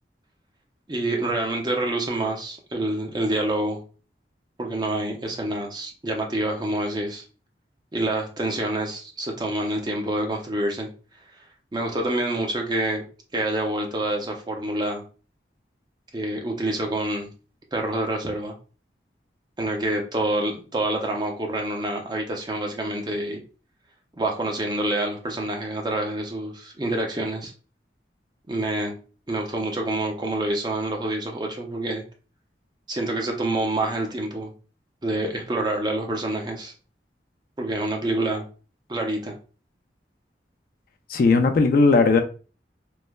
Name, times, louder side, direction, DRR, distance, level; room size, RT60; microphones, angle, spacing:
voice 1, 0.9-3.8 4.6-7.2 7.9-10.9 11.7-13.0 13.3-15.0 16.1-17.3 17.7-18.5 19.6-23.4 24.2-27.5 28.5-29.0 29.3-32.0 32.9-34.5 35.0-36.7 37.6-38.4 38.9-39.3, right 1 dB, 25° right, 0.5 m, -27 dB
voice 2, 41.1-42.2, left 4 dB, 55° left, 0.3 m, -17 dB
3.1 x 2.0 x 2.2 m
head